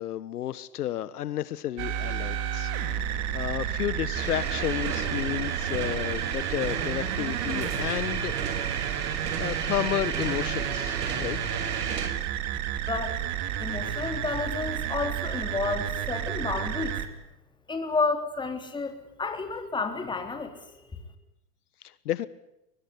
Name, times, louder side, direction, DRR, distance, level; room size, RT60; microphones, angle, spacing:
voice 1, 0.0-2.7 3.1-8.6 9.4-11.4 21.8-22.3, left 12 dB, 75° left, 16 dB, 1.4 m, -32 dB
sound 1, 1.8-17.1, right 10 dB, 35° right, 2.8 m, -31 dB
sound 2, 4.1-12.1, right 6 dB, 75° right, 6.6 m, -33 dB
voice 2, 12.9-13.2 13.6-17.0 17.7-21.0, left 4 dB, 10° left, 6 dB, 3.5 m, -31 dB
22.5 x 20.5 x 9.8 m, 0.88 s
hypercardioid pair, 130°, 46 cm